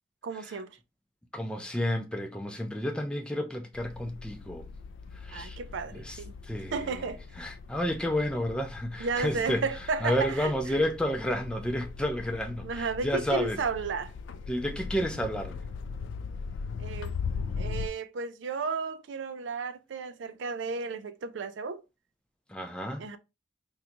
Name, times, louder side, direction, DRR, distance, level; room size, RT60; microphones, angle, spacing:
voice 1, 0.2-0.7 5.3-6.3 6.7-7.2 9.0-10.8 12.6-14.1 16.8-21.8 23.0-23.2, right 4 dB, 80° right, 0.4 m, -33 dB
voice 2, 1.3-4.7 5.2-5.6 5.9-6.2 6.5-7.0 7.4-9.6 10.0-13.6 14.5-15.6 22.5-23.1, equal, 5° left, 0.4 m, -31 dB
sound 1, 3.7-17.9, left 5 dB, 80° left, 0.3 m, -40 dB
3.9 x 2.3 x 2.8 m
head